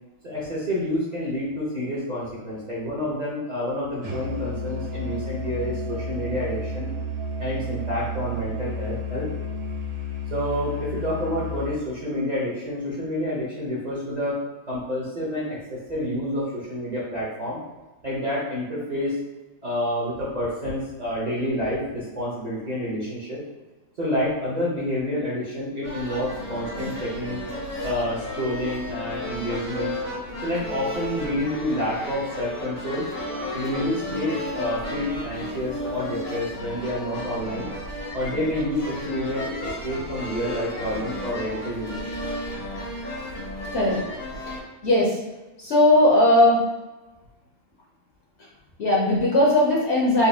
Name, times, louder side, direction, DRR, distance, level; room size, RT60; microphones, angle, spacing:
voice 1, 0.2-6.9 7.4-9.3 10.3-14.4 14.7-17.6 18.0-19.2 19.6-23.4 24.0-27.4 27.8-29.9 30.4-33.1 33.5-37.7 38.1-42.2, left 1 dB, 40° right, -7 dB, 0.7 m, -28 dB
Musical instrument, 4.0-11.8, left 1 dB, 65° right, 1.2 m, -31 dB
sound 1, 25.8-44.6, left 1 dB, 85° left, 1.7 m, -33 dB
voice 2, 44.8-45.2 45.6-46.6 48.8-50.3, left 1 dB, 60° left, -4 dB, 0.8 m, -18 dB
4.0 x 2.5 x 2.6 m, 1.1 s
omnidirectional pair, 1.6 m